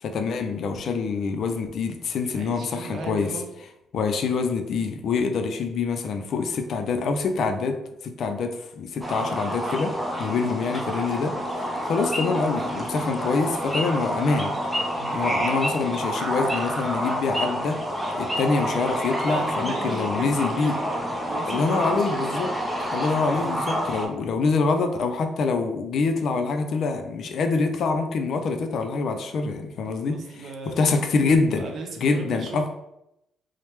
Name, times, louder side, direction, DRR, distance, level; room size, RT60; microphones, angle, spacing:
voice 1, 0.0-3.3 3.9-14.6 15.1-17.8 18.2-20.8 21.5-22.6 22.9-31.7 32.0-32.7, left 4 dB, 65° left, 6 dB, 0.3 m, -25 dB
voice 2, 2.3-3.5 10.4-10.6 14.9-15.2 19.2-21.8 23.0-23.4 24.2-24.3 30.1-30.9 31.6-32.7, right 3 dB, 60° right, 2 dB, 0.6 m, -37 dB
sound 1, 9.0-24.1, equal, 10° right, 0.6 m, -28 dB
3.1 x 2.0 x 3.0 m, 0.85 s
cardioid pair, 90°, 0 cm